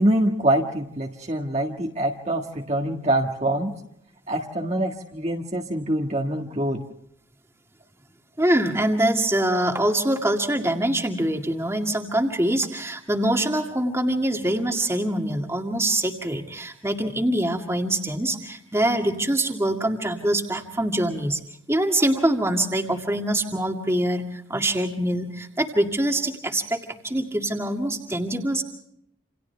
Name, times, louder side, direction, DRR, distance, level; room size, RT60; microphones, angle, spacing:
voice 1, 0.0-3.7 4.3-6.8, right 1 dB, 35° right, 1 dB, 1.7 m, -25 dB
voice 2, 8.4-21.4 21.7-28.6, right 1 dB, 15° right, 3 dB, 2.1 m, -24 dB
28.5 x 28.0 x 3.4 m, 0.74 s
head